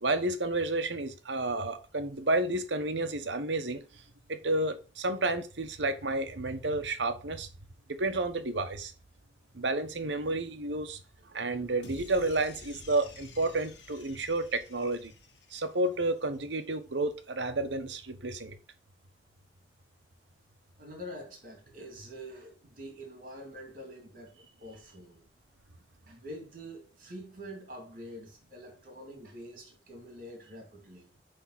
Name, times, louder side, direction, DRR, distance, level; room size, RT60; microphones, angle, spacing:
voice 1, 0.0-3.8 4.3-7.5 7.9-8.9 9.5-11.0 11.3-15.1 15.5-18.6, right 2 dB, 75° right, 1.1 m, -31 dB
sound 1, 11.8-16.2, left 2 dB, 75° left, 1.5 m, -51 dB
voice 2, 20.8-24.3 24.6-25.2 26.0-31.1, equal, 50° right, 2.5 m, -46 dB
10.0 x 3.6 x 4.0 m
head